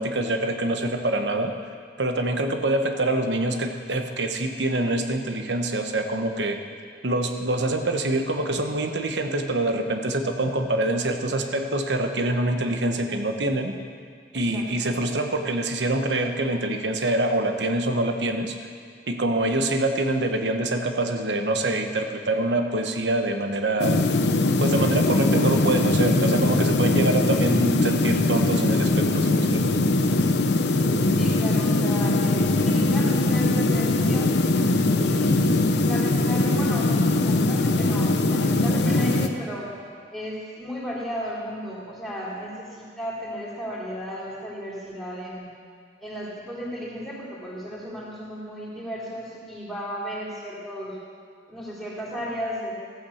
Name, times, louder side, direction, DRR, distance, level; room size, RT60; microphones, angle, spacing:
voice 1, 0.0-1.5 2.0-6.6 7.0-13.8 14.3-18.6 19.1-24.0 24.6-29.8, right 2 dB, 80° right, 5 dB, 1.1 m, -25 dB
voice 2, 14.3-14.9 31.1-34.3 34.8-35.3 35.8-39.7 40.1-45.5 46.0-51.0 51.5-52.7, equal, 5° left, -7 dB, 3.0 m, -34 dB
sound 1, 23.8-39.3, left 2 dB, 65° left, 0.8 m, -21 dB
15.0 x 8.7 x 7.1 m, 2.1 s
head